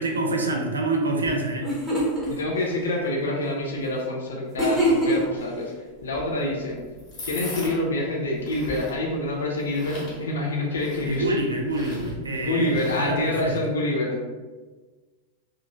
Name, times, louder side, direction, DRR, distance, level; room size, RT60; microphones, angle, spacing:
voice 1, 0.0-1.8 10.2-10.3 11.0-13.6, right 2 dB, 75° right, 2 dB, 0.4 m, -27 dB
sound 1, 1.3-1.4 1.6-2.3 4.6-5.4, equal, ahead, 0.9 m, -23 dB
voice 2, 2.3-5.7 6.0-6.8 7.2-11.3 11.9-14.3, left 1 dB, 65° left, -1 dB, 0.6 m, -27 dB
sound 2, 6.0-13.5, left 1 dB, 35° left, 1.4 m, -40 dB
2.9 x 2.4 x 2.5 m, 1.3 s
figure-of-eight pair, 90°, 0 cm